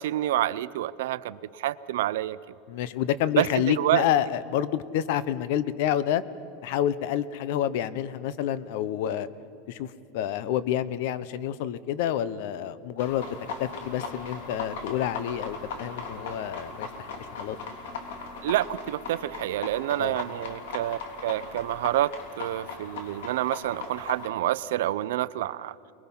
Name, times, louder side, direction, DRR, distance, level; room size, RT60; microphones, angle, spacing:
voice 1, 0.0-2.4 3.4-4.1 18.4-25.7, right 14 dB, 85° right, 17 dB, 0.6 m, -28 dB
voice 2, 2.7-6.2 6.6-9.3 9.7-17.1 17.4-17.6 20.0-20.2, left 10 dB, 65° left, 17 dB, 0.9 m, -28 dB
sound 1, 13.0-24.3, left 4 dB, 90° left, 3.2 m, -38 dB
24.5 x 21.0 x 5.6 m, 2.8 s
supercardioid pair, 150°, 0 cm